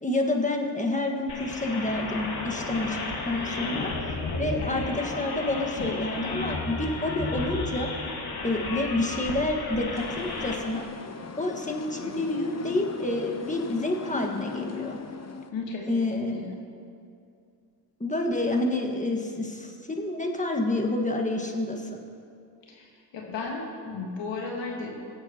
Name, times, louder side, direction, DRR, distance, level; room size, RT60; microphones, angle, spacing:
voice 1, 0.0-3.0 3.2-7.9 8.4-10.9 11.4-15.0 15.9-16.6 18.0-22.0, left 2 dB, 15° left, 2 dB, 1.6 m, -28 dB
sound 1, 1.3-10.6, left 3 dB, 60° left, 1.8 m, -33 dB
sound 2, 9.9-15.5, left 5 dB, 35° left, 0.9 m, -39 dB
voice 2, 15.5-16.5 22.7-22.9 23.1-24.9, left 3 dB, 80° left, -1 dB, 1.6 m, -34 dB
19.0 x 8.0 x 2.9 m, 2.4 s
cardioid pair, 60°, 43 cm